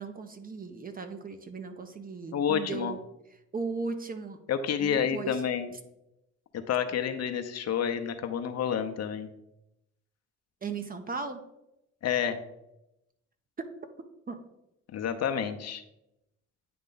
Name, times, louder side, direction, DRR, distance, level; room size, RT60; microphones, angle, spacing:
voice 1, 0.0-3.0 3.5-4.4 4.8-5.4 10.6-11.4 13.6-13.7 14.3-14.4, right 4 dB, 30° right, 7 dB, 0.7 m, -36 dB
voice 2, 2.3-2.9 4.5-5.7 6.7-9.3 12.0-12.4 14.9-15.8, left 8 dB, 60° left, 7 dB, 0.7 m, -29 dB
9.3 x 3.2 x 3.9 m, 0.87 s
cardioid pair, 90°, 30 cm